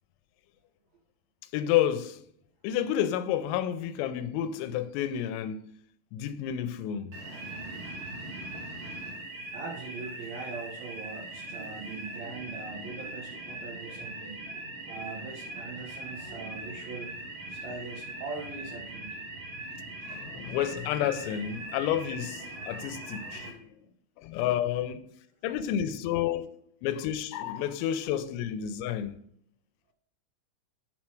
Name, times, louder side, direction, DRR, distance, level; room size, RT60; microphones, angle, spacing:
voice 1, 1.5-2.2 2.6-5.7 6.1-7.2 20.0-23.8 24.2-25.1 25.4-26.5 26.8-29.2, left 10 dB, 85° left, 3.3 m, -30 dB
sound 1, 7.1-23.5, right 2 dB, 65° right, 1.5 m, -41 dB
voice 2, 9.5-14.4 14.9-17.2 17.5-19.2, right 4 dB, 85° right, 2.0 m, -41 dB
9.9 x 4.3 x 4.5 m
omnidirectional pair, 5.9 m